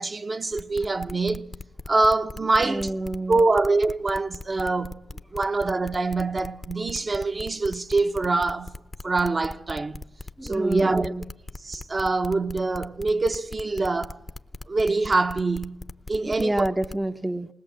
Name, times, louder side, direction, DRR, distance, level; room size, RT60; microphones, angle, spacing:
voice 1, 0.0-1.5 1.9-2.9 3.3-5.0 5.3-8.7 9.0-10.0 10.4-11.1 11.6-14.2 14.7-15.8 16.1-16.7, right 3 dB, 35° right, 0.9 m, -24 dB
sound 1, 0.5-16.9, left 2 dB, 30° left, 0.7 m, -39 dB
voice 2, 2.6-3.4 10.4-11.2 16.4-17.5, right 1 dB, 10° right, 0.7 m, -28 dB
20.0 x 20.0 x 7.5 m
cardioid pair, 85°, 0 cm